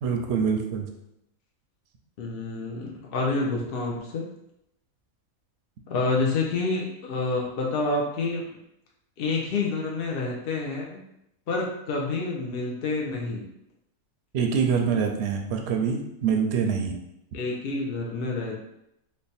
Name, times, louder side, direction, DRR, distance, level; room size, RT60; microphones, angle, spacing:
voice 1, 0.0-0.9 14.3-17.0, right 6 dB, 65° right, 3 dB, 0.7 m, -25 dB
voice 2, 2.2-4.3 5.9-8.4 9.2-11.0 11.5-13.5 17.3-18.6, left 3 dB, 60° left, -1 dB, 0.6 m, -28 dB
3.2 x 2.1 x 4.1 m, 0.82 s
omnidirectional pair, 1.5 m